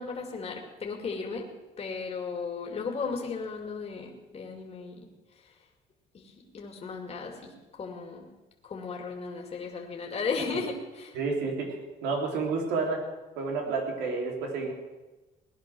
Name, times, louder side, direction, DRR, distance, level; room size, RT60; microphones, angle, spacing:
voice 1, 0.0-1.5 1.8-5.0 6.1-8.3 8.6-11.2, left 4 dB, 35° left, 1 dB, 2.5 m, -35 dB
voice 2, 11.1-11.8 12.0-13.0 13.4-14.7, right 4 dB, 90° right, 1 dB, 3.6 m, -30 dB
18.5 x 10.5 x 6.2 m, 1.1 s
cardioid pair, 110°, 17 cm